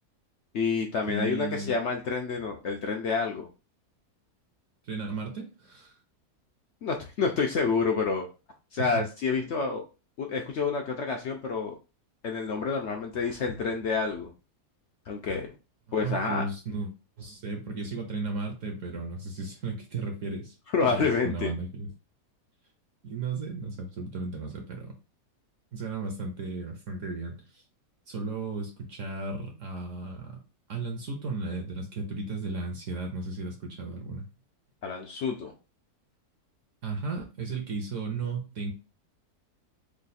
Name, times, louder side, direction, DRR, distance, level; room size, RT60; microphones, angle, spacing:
voice 1, 0.5-3.5 6.8-8.3 8.7-9.8 10.2-11.7 12.2-14.3 15.1-15.5 15.9-16.4 20.7-21.5 34.8-35.5, left 5 dB, 70° left, 2 dB, 0.6 m, -28 dB
voice 2, 1.1-1.7 4.8-5.9 8.8-9.0 15.9-16.9 17.2-20.6 20.8-21.9 23.0-25.0 25.7-27.6 28.1-30.4 30.7-34.2 36.8-38.7, right 3 dB, 60° right, 3 dB, 0.9 m, -35 dB
3.2 x 2.3 x 4.0 m, 0.31 s
omnidirectional pair, 1.7 m